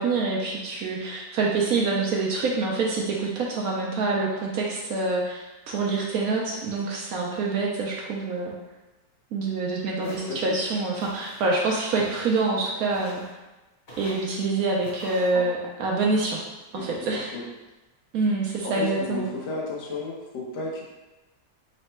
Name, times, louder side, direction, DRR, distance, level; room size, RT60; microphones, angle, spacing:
voice 1, 0.0-8.5 9.3-13.2 14.0-16.4 16.7-17.3 18.1-19.3, right 3 dB, 70° right, -2 dB, 0.8 m, -26 dB
voice 2, 10.0-10.5 15.3-15.4 16.7-16.8 17.1-17.4 18.6-20.8, left 3 dB, 85° left, -4 dB, 1.6 m, -33 dB
Walk footsteps, 10.0-10.5 11.0-11.4 12.0-12.5 12.9-13.3 13.9-14.3 14.8-15.3, equal, 45° left, 1.0 m, -44 dB
4.0 x 2.2 x 4.2 m, 1.1 s
omnidirectional pair, 2.0 m